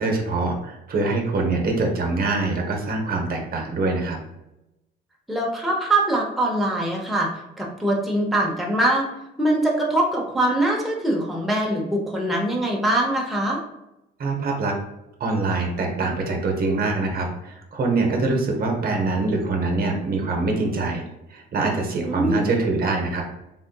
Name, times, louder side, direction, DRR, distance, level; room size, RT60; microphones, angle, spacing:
voice 1, 0.0-4.2 14.2-14.8 15.2-21.0 21.3-23.2, right 3 dB, 50° right, 2 dB, 0.7 m, -24 dB
voice 2, 5.3-7.3 7.6-9.1 9.4-13.6 22.0-22.5, right 1 dB, ahead, -2 dB, 0.6 m, -22 dB
3.6 x 2.5 x 2.2 m, 0.90 s
cardioid pair, 90°, 20 cm